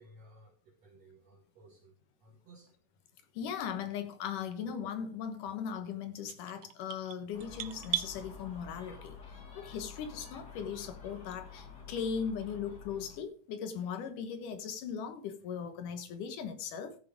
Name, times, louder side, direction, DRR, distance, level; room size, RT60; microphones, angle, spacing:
voice 1, 0.0-2.7, right 1 dB, 55° right, 2.6 m, -58 dB
voice 2, 3.3-17.0, left 7 dB, 75° left, 2.7 m, -38 dB
sound 1, 6.3-8.1, right 16 dB, 85° right, 2.3 m, -37 dB
Gull seagull, 7.3-13.2, left 6 dB, 35° left, 2.4 m, -49 dB
14.0 x 6.5 x 4.8 m
omnidirectional pair, 3.9 m